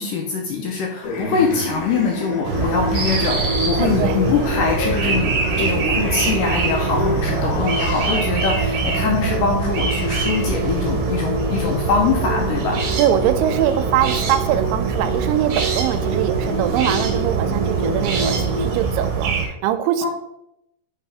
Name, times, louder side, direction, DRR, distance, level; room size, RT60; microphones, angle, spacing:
voice 1, 0.0-12.8 20.0-20.1, left 5 dB, 80° left, 1 dB, 2.0 m, -23 dB
sound 1, 1.0-8.2, left 2 dB, 60° left, 1.8 m, -28 dB
sound 2, 2.4-19.5, right 5 dB, 70° right, 2.3 m, -23 dB
sound 3, 3.8-18.8, right 1 dB, 40° left, 1.5 m, -29 dB
voice 2, 3.8-4.2 13.0-20.1, right 11 dB, 90° right, 11 dB, 2.6 m, -22 dB
7.2 x 4.2 x 3.5 m, 0.81 s
omnidirectional pair, 4.5 m